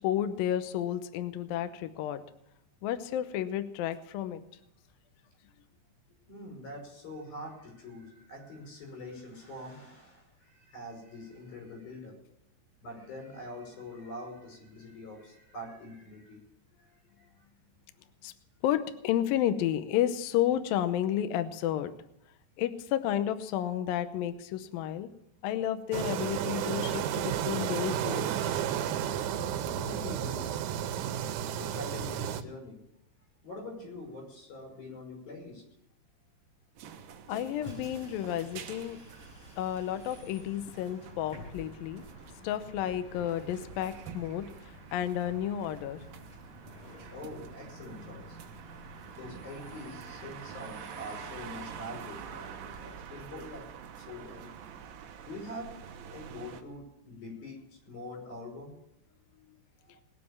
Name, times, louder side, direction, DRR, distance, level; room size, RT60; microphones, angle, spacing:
voice 1, 0.0-2.2 2.8-4.4 18.2-18.3 18.6-21.9 22.6-25.1 25.4-28.6 37.3-39.0 39.6-42.0 42.4-44.5 44.9-46.0, left 11 dB, 90° left, 10 dB, 2.0 m, -31 dB
voice 2, 6.3-12.2 12.8-16.4 17.2-17.3 29.6-30.6 31.0-32.8 33.4-35.6 47.1-48.4 49.1-53.7 54.0-54.5 55.2-58.8 59.9-60.0, left 1 dB, 55° left, 0 dB, 7.3 m, -44 dB
sound 1, 25.9-32.4, right 10 dB, 90° right, 3.2 m, -32 dB
sound 2, 36.8-56.6, right 8 dB, 70° right, 2.2 m, -47 dB
Bus, 37.5-53.0, left 1 dB, 30° left, 5.9 m, -51 dB
20.0 x 7.6 x 7.2 m, 0.81 s
omnidirectional pair, 5.2 m